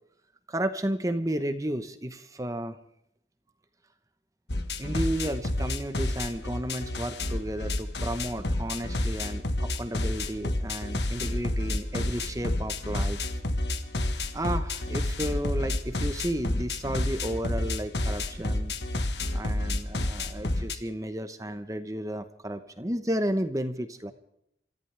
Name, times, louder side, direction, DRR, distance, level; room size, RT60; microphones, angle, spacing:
voice 1, 0.5-2.8 4.8-13.2 14.3-18.7 19.3-24.1, right 1 dB, 20° right, 9 dB, 1.0 m, -32 dB
sound 1, 4.5-20.8, left 1 dB, 80° left, 1.5 m, -30 dB
28.0 x 14.5 x 3.4 m, 0.74 s
head